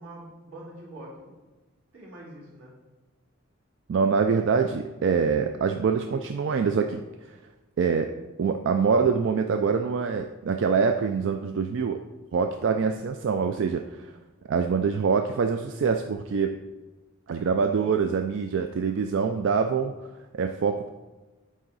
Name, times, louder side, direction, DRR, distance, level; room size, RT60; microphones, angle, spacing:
voice 1, 0.0-1.4 1.9-2.7, right 1 dB, 85° right, -4 dB, 2.3 m, -44 dB
voice 2, 3.9-7.0 7.8-8.1 8.4-12.0 12.3-14.1 14.5-16.5 17.3-19.9 20.3-20.9, right 5 dB, 60° right, 6 dB, 0.4 m, -25 dB
8.9 x 3.7 x 4.0 m, 1.2 s
head